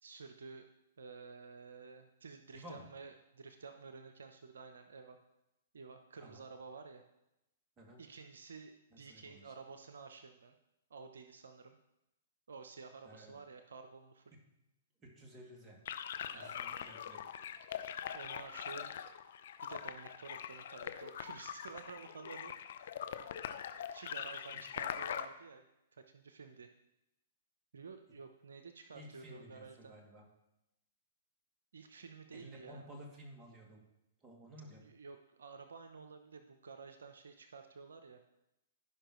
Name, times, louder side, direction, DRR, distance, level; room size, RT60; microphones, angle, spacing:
voice 1, 0.0-0.7 1.0-5.2 5.7-7.0 8.0-10.6 10.9-11.8 12.5-14.3 16.3-16.7 18.1-19.0 19.6-22.5 23.6-26.7 27.7-30.0 31.7-32.9 34.8-38.2, right 4 dB, 75° right, 7 dB, 0.7 m, -51 dB
voice 2, 2.5-2.9 6.2-6.5 7.8-8.0 8.9-9.5 13.0-13.4 15.0-15.8 16.3-17.2 28.9-30.2 32.3-33.8 34.2-34.8, equal, 20° right, -1 dB, 2.4 m, -54 dB
sound 1, 15.9-25.3, left 9 dB, 65° left, 0.6 m, -43 dB
14.5 x 5.6 x 3.1 m, 0.89 s
hypercardioid pair, 120°, 0 cm